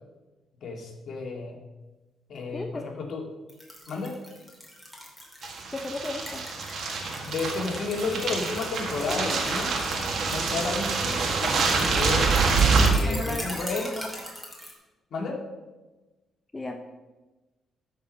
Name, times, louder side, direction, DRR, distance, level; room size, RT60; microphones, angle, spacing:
voice 1, 0.6-1.6 2.3-3.2 3.9-4.1 7.2-9.7 10.3-12.4 12.9-13.9 15.1-15.4, left 4 dB, 60° left, 1 dB, 2.1 m, -32 dB
voice 2, 2.5-2.8 5.7-6.4 13.0-13.4 13.7-14.1 16.5-16.7, left 2 dB, 20° left, 4 dB, 0.7 m, -34 dB
sound 1, 3.5-14.7, equal, ahead, 3.0 m, -40 dB
sound 2, 5.4-12.9, right 4 dB, 65° right, 1.8 m, -26 dB
13.0 x 4.9 x 5.2 m, 1.2 s
cardioid pair, 90°, 0 cm